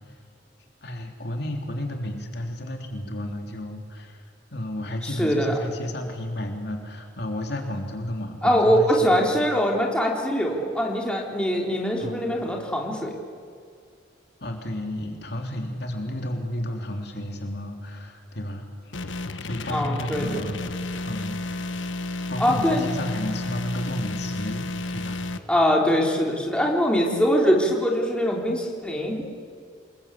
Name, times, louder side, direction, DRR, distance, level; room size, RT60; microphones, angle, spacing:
voice 1, 0.8-4.2 4.5-9.1 12.0-12.2 14.4-18.9 19.4-20.6 21.0-21.4 22.3-25.2, left 1 dB, 60° left, 3 dB, 3.3 m, -32 dB
voice 2, 5.0-5.6 8.4-13.1 19.7-20.5 22.4-22.9 25.5-29.2, equal, 5° left, -1 dB, 3.6 m, -23 dB
sound 1, 18.9-25.4, left 2 dB, 85° left, 1.3 m, -32 dB
28.0 x 22.0 x 8.5 m, 2.2 s
head